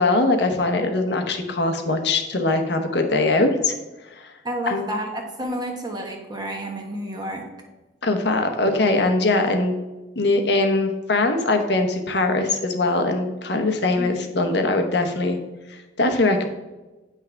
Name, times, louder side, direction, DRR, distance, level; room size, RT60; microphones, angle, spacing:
voice 1, 0.0-3.7 4.2-4.3 4.7-4.9 8.0-9.7 10.2-15.4 15.7-16.5, left 2 dB, 60° left, 5 dB, 0.9 m, -21 dB
voice 2, 4.4-7.5 14.0-14.1, equal, 20° right, 1 dB, 1.1 m, -30 dB
9.2 x 5.9 x 3.4 m, 1.1 s
head